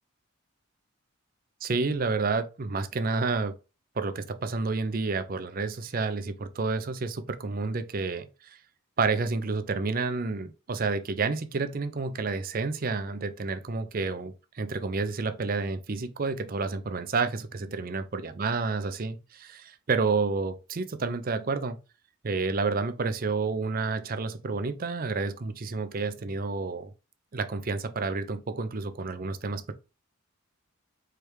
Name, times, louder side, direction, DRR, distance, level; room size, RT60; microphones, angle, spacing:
voice 1, 1.6-3.5 4.0-8.6 9.0-21.8 22.2-26.9 27.3-29.7, right 4 dB, 45° right, 0.5 m, -30 dB
4.7 x 3.3 x 3.3 m
head